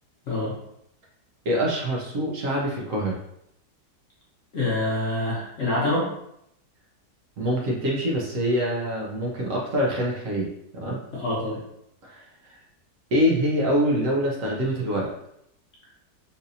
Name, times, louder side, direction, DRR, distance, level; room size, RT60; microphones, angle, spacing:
voice 1, 1.5-3.2 7.4-10.5 10.7-11.0 12.0-12.2 13.1-15.1, equal, 60° right, -3 dB, 0.9 m, -25 dB
voice 2, 4.5-6.1 11.1-11.6, left 2 dB, 50° left, -6 dB, 1.1 m, -26 dB
4.0 x 2.5 x 2.6 m, 0.77 s
omnidirectional pair, 1.9 m